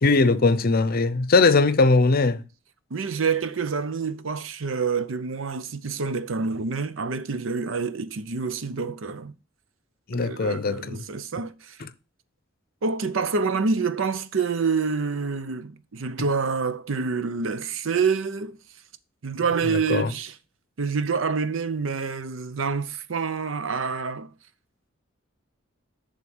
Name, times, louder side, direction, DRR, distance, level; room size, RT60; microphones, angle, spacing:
voice 1, 0.0-2.4 10.1-11.0 11.8-11.9 19.7-20.1, left 3 dB, 50° left, 0.6 m, -20 dB
voice 2, 2.9-9.3 10.1-11.8 12.8-18.6 19.2-20.3 20.8-24.3, right 5 dB, 75° right, 0.6 m, -27 dB
10.5 x 3.7 x 6.0 m
head